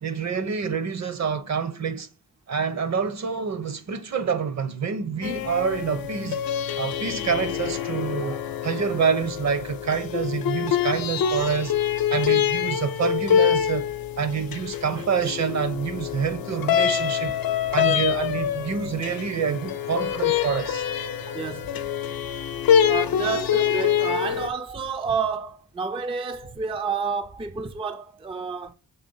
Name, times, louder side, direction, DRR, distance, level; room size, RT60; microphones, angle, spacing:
voice 1, 0.0-2.1 2.5-6.4 6.8-8.4 8.6-11.8 12.1-13.9 14.2-17.3 17.7-20.8, right 6 dB, 50° right, 0.8 m, -27 dB
sound 1, 5.2-24.5, left 9 dB, 90° left, 0.7 m, -25 dB
voice 2, 10.7-11.6 14.9-15.3 17.8-18.0 21.3-21.7 22.9-28.7, right 5 dB, 15° right, 0.4 m, -30 dB
7.2 x 3.4 x 5.4 m
wide cardioid pair, 155°, 34 cm